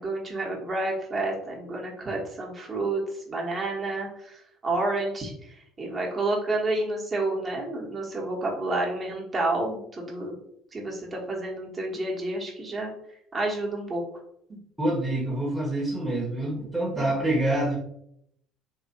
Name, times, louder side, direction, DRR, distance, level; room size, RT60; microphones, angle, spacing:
voice 1, 0.0-10.3 10.7-12.9 13.3-14.0 16.9-17.1, right 2 dB, 30° right, -1 dB, 1.1 m, -30 dB
voice 2, 14.8-17.8, right 1 dB, 5° right, -6 dB, 1.0 m, -26 dB
3.4 x 3.0 x 2.7 m, 0.72 s
figure-of-eight pair, 60°, 0 cm